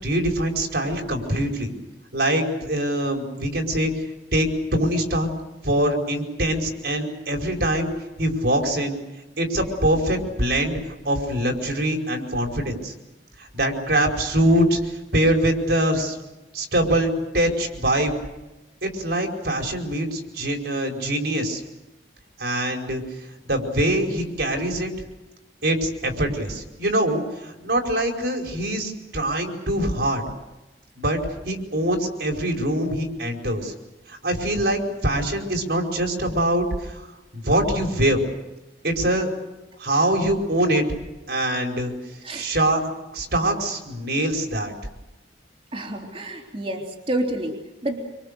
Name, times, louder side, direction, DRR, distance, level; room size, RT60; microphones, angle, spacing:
voice 1, 0.0-1.7 2.1-3.9 4.3-5.3 5.6-7.9 8.2-9.0 9.4-10.8 11.1-12.9 13.4-14.8 15.1-16.2 16.5-18.1 18.8-21.6 22.4-23.0 23.5-24.9 25.6-30.2 31.0-31.2 31.4-33.7 34.1-37.1 37.3-38.2 38.8-39.3 39.8-40.8 41.3-41.9 42.3-42.8 43.1-44.7, right 1 dB, 70° right, 2 dB, 5.2 m, -23 dB
voice 2, 45.7-48.0, right 1 dB, 35° right, 0 dB, 3.3 m, -29 dB
26.5 x 26.0 x 6.9 m, 1.0 s
head